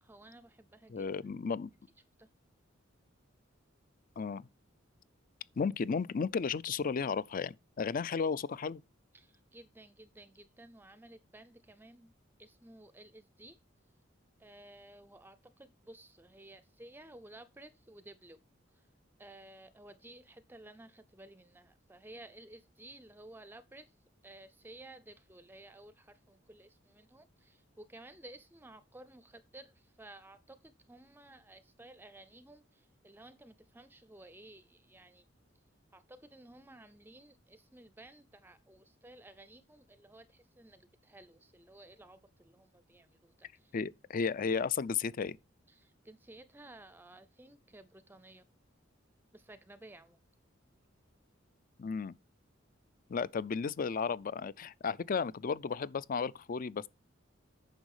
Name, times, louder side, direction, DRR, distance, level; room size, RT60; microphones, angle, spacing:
voice 1, 0.0-1.1 2.2-2.3 9.1-12.1 12.4-13.6 14.4-18.4 19.2-23.9 24.2-35.3 35.9-43.7 45.7-48.5 49.3-50.2, right 1 dB, 10° right, 0.5 m, -55 dB
voice 2, 0.9-1.7 4.2-4.5 5.6-8.8 43.7-45.4 51.8-52.1 53.1-56.9, left 5 dB, 45° left, 0.4 m, -34 dB
9.2 x 6.3 x 4.8 m
head